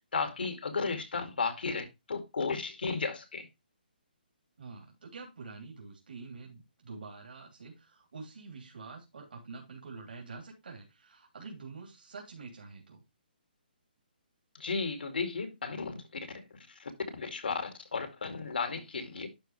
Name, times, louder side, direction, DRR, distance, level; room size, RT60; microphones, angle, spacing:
voice 1, 0.1-3.5 14.5-16.0 16.8-16.9 17.2-19.3, left 4 dB, 75° left, 2.3 m, -34 dB
voice 2, 4.6-13.0, right 4 dB, 65° right, 3.2 m, -47 dB
11.0 x 4.8 x 3.2 m
hypercardioid pair, 170°, 5 cm